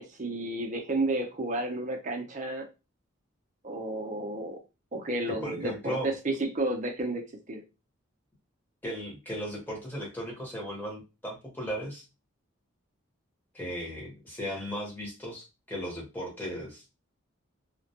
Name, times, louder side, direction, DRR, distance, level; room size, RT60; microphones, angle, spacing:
voice 1, 0.0-2.7 3.6-4.6 4.9-7.2 7.5-7.6, right 2 dB, 35° right, 3 dB, 0.5 m, -31 dB
voice 2, 5.3-6.1 8.8-12.0 13.5-16.8, equal, 10° left, -3 dB, 0.8 m, -36 dB
2.2 x 2.1 x 2.7 m, 0.28 s
head